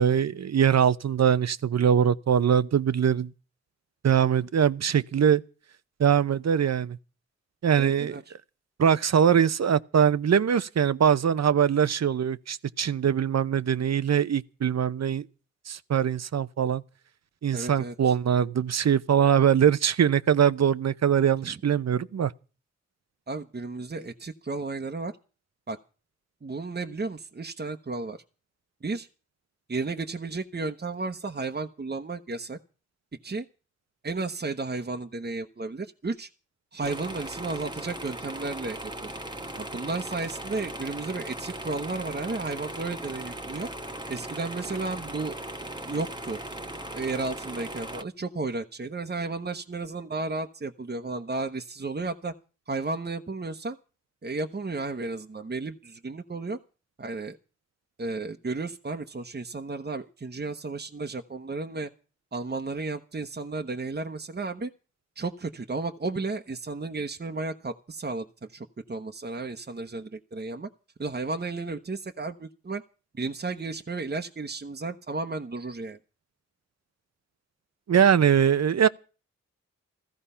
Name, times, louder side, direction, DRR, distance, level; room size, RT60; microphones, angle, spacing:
voice 1, 0.0-3.3 4.0-5.4 6.0-7.0 7.6-8.1 8.8-15.2 15.7-16.8 17.4-22.3 77.9-78.9, right 8 dB, 65° right, 0.8 m, -22 dB
voice 2, 7.8-8.3 17.5-18.1 21.4-21.6 23.3-25.1 25.7-25.8 26.4-28.2 28.8-29.1 29.7-32.6 33.2-33.4 34.0-36.3 36.7-39.1 39.6-43.7 44.1-45.4 45.8-46.4 46.9-52.3 52.7-53.8 54.2-56.6 57.0-57.4 58.0-61.9 62.3-64.7 65.2-70.7 71.0-72.8 73.1-76.0, right 3 dB, 35° right, 1.1 m, -33 dB
sound 1, 36.8-48.0, right 1 dB, 15° right, 1.3 m, -38 dB
15.0 x 14.5 x 5.6 m
cardioid pair, 45°, 29 cm